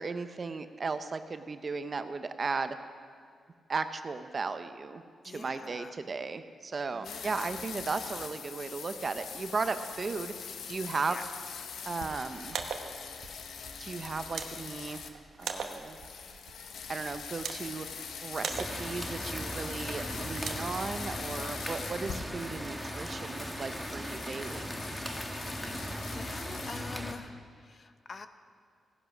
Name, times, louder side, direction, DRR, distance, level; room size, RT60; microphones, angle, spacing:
voice 1, 0.0-2.8 3.7-11.2 11.8-12.6 13.8-15.0 15.4-16.0 16.9-17.9 18.2-24.7, right 4 dB, 40° right, 10 dB, 0.7 m, -36 dB
voice 2, 5.2-6.0 6.9-7.5 11.1-11.2 25.5-28.3, left 4 dB, 45° left, 9 dB, 0.8 m, -46 dB
sound 1, 7.0-15.1 15.4-26.8, left 6 dB, 85° left, 1.0 m, -43 dB
sound 2, 12.3-21.3, right 6 dB, 85° right, 1.1 m, -43 dB
sound 3, 18.5-27.1, equal, ahead, 1.3 m, -38 dB
16.5 x 10.5 x 6.1 m, 2.2 s
cardioid pair, 100°, 0 cm